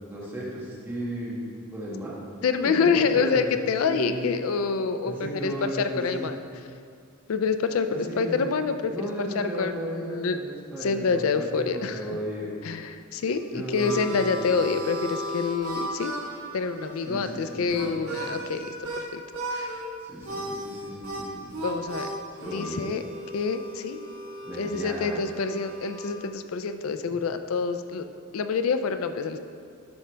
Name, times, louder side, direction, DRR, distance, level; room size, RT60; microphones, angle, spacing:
voice 1, 0.1-1.4 1.7-2.1 2.6-4.2 5.0-6.3 7.9-8.5 8.9-12.7 13.5-14.0 14.3-14.4 17.0-18.4 20.0-21.5 22.3-22.9 24.4-25.2, equal, 10° right, -8 dB, 1.9 m, -35 dB
voice 2, 2.4-6.4 7.3-10.4 10.8-12.0 12.6-16.1 16.5-18.7 19.0-19.2 19.5-19.8 21.6-23.0 23.3-24.0 24.6-28.1 28.3-29.4, left 5 dB, 80° left, 9 dB, 0.4 m, -27 dB
Harmonica, 13.2-19.0 19.3-19.8 20.2-26.2, right 1 dB, 80° right, 1.5 m, -36 dB
12.5 x 5.6 x 3.4 m, 2.3 s
head